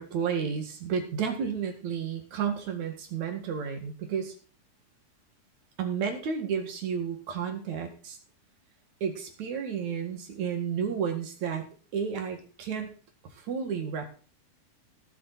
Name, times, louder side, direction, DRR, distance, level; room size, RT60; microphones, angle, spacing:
voice 1, 0.0-4.3 5.8-8.2 9.0-11.7 11.9-12.9 13.4-14.1, right 7 dB, 65° right, 4 dB, 3.1 m, -32 dB
17.5 x 7.1 x 4.1 m, 0.39 s
omnidirectional pair, 3.7 m